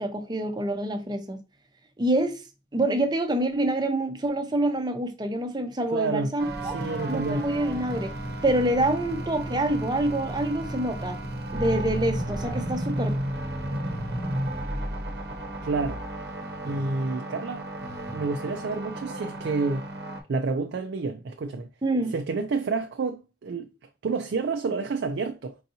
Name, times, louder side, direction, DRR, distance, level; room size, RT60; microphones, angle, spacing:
voice 1, 0.0-1.4 2.0-2.4 2.7-6.8 7.1-8.1 8.4-11.2 11.5-13.1 21.8-22.1, right 1 dB, 25° right, 0.6 m, -26 dB
voice 2, 5.9-6.3 6.6-7.4 15.6-16.0 16.6-17.7 18.1-19.9 20.3-21.7 22.1-23.7 24.0-25.6, right 4 dB, 85° right, 0.4 m, -29 dB
sound 1, 6.4-20.2, right 1 dB, 65° right, 0.8 m, -33 dB
4.6 x 2.7 x 2.7 m
head